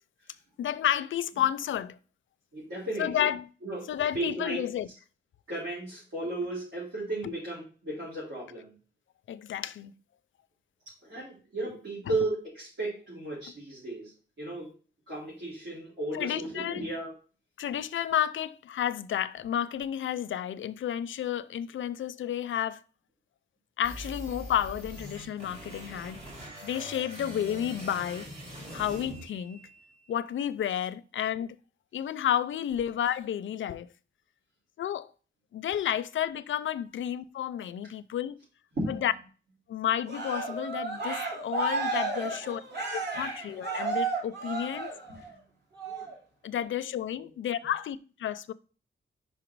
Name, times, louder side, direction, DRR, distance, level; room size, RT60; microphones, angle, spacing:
voice 1, 0.6-2.0 3.0-3.5 3.9-4.9 7.2-7.3 9.3-9.9 16.1-16.8 17.6-22.8 23.8-26.2 26.6-28.3 28.7-29.6 30.1-31.6 31.9-33.9 34.8-35.1 35.5-38.4 38.9-39.1 39.7-42.6 42.9-44.9 46.4-48.5, left 10 dB, 90° left, 0.4 m, -31 dB
voice 2, 2.5-3.3 3.6-3.9 4.1-4.6 5.5-8.7 11.0-14.1 14.4-14.7 15.1-17.1 38.8-39.1 47.2-47.3 47.6-47.7, right 2 dB, 80° right, 3.7 m, -34 dB
sound 1, 23.8-29.9, right 1 dB, 35° right, 2.3 m, -43 dB
Cheering, 40.1-45.3 45.8-46.1, right 3 dB, 60° right, 3.0 m, -33 dB
5.5 x 5.0 x 4.6 m
wide cardioid pair, 175°, 20 cm